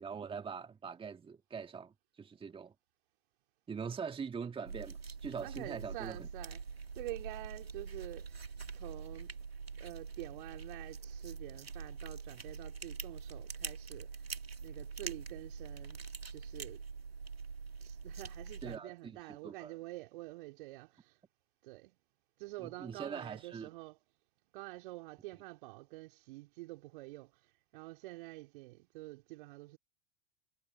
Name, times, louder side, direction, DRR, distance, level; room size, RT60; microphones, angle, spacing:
voice 1, 0.0-2.7 3.7-6.3 18.6-19.1 19.4-19.7 22.6-23.7, right 6 dB, 20° right, 1.9 m, -43 dB
sound 1, 4.7-18.8, right 5 dB, 90° right, 2.4 m, -45 dB
voice 2, 5.4-9.4 9.8-14.3 14.6-16.0 16.3-16.8 17.8-21.2 21.6-22.0 22.4-24.0 24.5-29.8, right 20 dB, 60° right, 3.3 m, -48 dB
hypercardioid pair, 90°, 30 cm